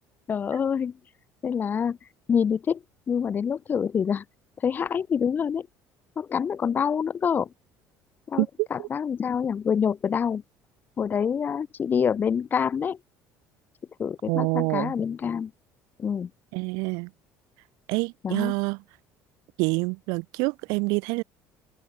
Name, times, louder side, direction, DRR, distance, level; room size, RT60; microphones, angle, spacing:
voice 1, 0.3-0.9 1.4-2.0 2.3-4.2 4.6-5.7 6.2-7.5 8.3-8.4 8.7-10.4 11.0-13.0 14.0-15.5 16.0-16.3 18.2-18.5, left 7 dB, 30° left, 2.3 m, -26 dB
voice 2, 8.4-8.9 14.3-14.9 16.5-17.1 17.9-18.8 19.6-21.2, right 29 dB, 85° right, 2.2 m, -27 dB
open air
cardioid pair, 140°, 6 cm